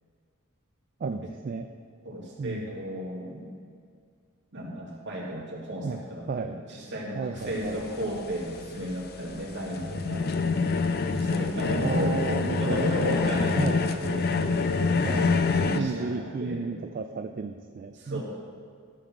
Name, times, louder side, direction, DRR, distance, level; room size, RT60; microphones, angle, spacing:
voice 1, 1.0-1.7 2.4-2.6 5.8-6.0 6.3-6.6 7.1-7.8 11.8-12.9 13.6-13.8 15.0-15.4 15.8-18.2, right 4 dB, 40° right, 7 dB, 0.3 m, -32 dB
voice 2, 2.0-3.5 4.5-10.3 11.1-14.3 15.3-16.1 16.4-16.6 17.9-18.2, equal, 55° right, -3 dB, 2.3 m, -33 dB
sound 1, 7.4-15.8, left 4 dB, 45° left, 0.5 m, -26 dB
12.5 x 4.3 x 7.2 m, 2.2 s
head